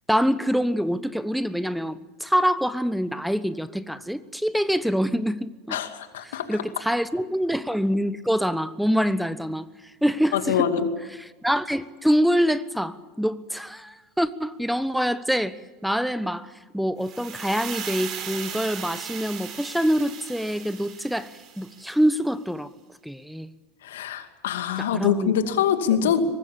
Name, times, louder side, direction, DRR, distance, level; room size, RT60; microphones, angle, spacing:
voice 1, 0.1-5.8 6.2-9.7 10.0-10.7 11.1-21.3 21.6-22.7 23.0-23.5 24.8-25.6 25.9-26.1, equal, ahead, 15 dB, 1.0 m, -25 dB
voice 2, 5.7-6.5 10.3-10.9 23.8-26.2, left 8 dB, 75° left, 8 dB, 2.4 m, -24 dB
sound 1, 17.0-22.1, right 8 dB, 45° right, 4.5 m, -37 dB
23.5 x 20.0 x 8.7 m, 1.3 s
hypercardioid pair, 85°, 0 cm